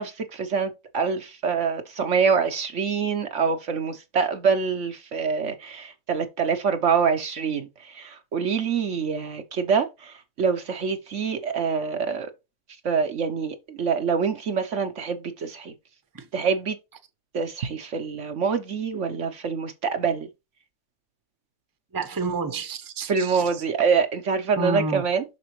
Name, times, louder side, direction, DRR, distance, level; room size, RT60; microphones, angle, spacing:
voice 1, 0.0-12.3 12.8-15.7 16.3-16.8 17.3-20.3 23.1-25.2, right 6 dB, 60° right, 1.1 m, -25 dB
voice 2, 21.9-23.6 24.6-25.0, right 3 dB, 15° right, 0.9 m, -29 dB
6.8 x 6.1 x 3.1 m
omnidirectional pair, 1.5 m